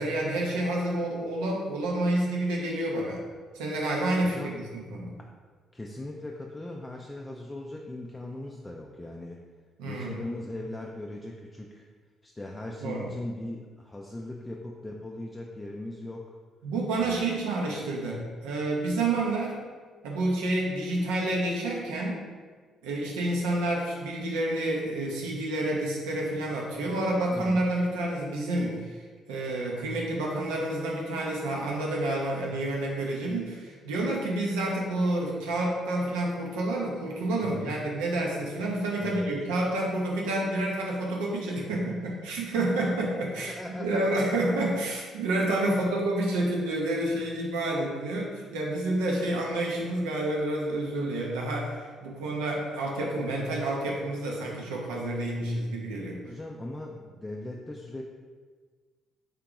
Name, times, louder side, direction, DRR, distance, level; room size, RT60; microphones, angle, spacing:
voice 1, 0.0-3.2 3.5-5.2 9.8-10.2 12.8-13.1 16.6-19.6 20.0-22.2 22.8-29.0 29.3-56.2, right 1 dB, 70° right, -2 dB, 0.6 m, -29 dB
voice 2, 4.2-4.7 5.2-5.3 5.7-9.4 9.9-11.8 12.2-16.4 17.0-17.4 27.3-27.6 37.4-37.8 39.0-39.3 43.4-44.2 45.7-45.8 56.2-58.0, left 1 dB, 15° left, -1 dB, 0.4 m, -39 dB
3.7 x 2.8 x 3.5 m, 1.5 s
figure-of-eight pair, 45°, 0 cm